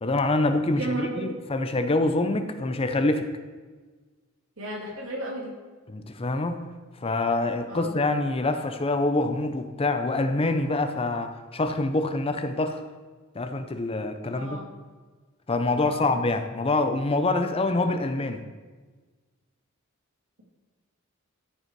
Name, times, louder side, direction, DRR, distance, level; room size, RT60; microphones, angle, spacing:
voice 1, 0.0-3.3 5.9-6.7 7.0-12.8 13.4-14.6 15.5-18.4, left 2 dB, 25° left, 8 dB, 0.6 m, -25 dB
voice 2, 0.7-1.3 4.6-5.6 7.7-8.0 14.3-14.7 15.8-16.1, right 2 dB, 70° right, -1 dB, 2.5 m, -34 dB
13.5 x 5.5 x 4.6 m, 1.4 s
head